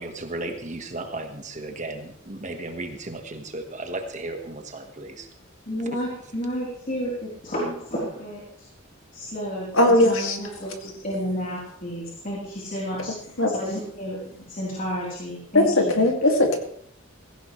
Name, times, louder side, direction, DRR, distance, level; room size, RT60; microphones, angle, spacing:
voice 1, 0.0-5.3, right 2 dB, 35° right, 5 dB, 1.5 m, -35 dB
voice 2, 5.7-8.4 9.1-13.1 13.5-16.0, equal, 40° left, -6 dB, 3.7 m, -31 dB
voice 3, 9.7-10.4 13.4-13.5 15.5-16.6, left 1 dB, 80° left, 3 dB, 2.4 m, -19 dB
16.0 x 15.5 x 3.3 m, 0.66 s
head